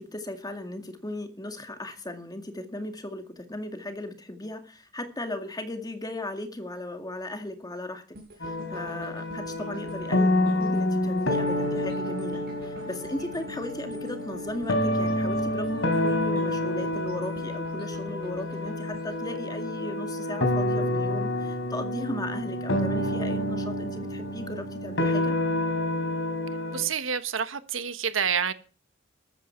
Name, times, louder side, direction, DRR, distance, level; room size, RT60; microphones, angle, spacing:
voice 1, 0.0-8.0 8.4-25.4, left 1 dB, 20° left, 2.1 m, -36 dB
sound 1, 8.1-20.3 20.7-20.9, right 1 dB, 55° right, 6.4 m, -48 dB
sound 2, 8.4-26.8, left 1 dB, 70° left, 3.8 m, -28 dB
voice 2, 26.7-28.5, right 7 dB, 90° right, 1.4 m, -28 dB
14.0 x 13.0 x 4.5 m
head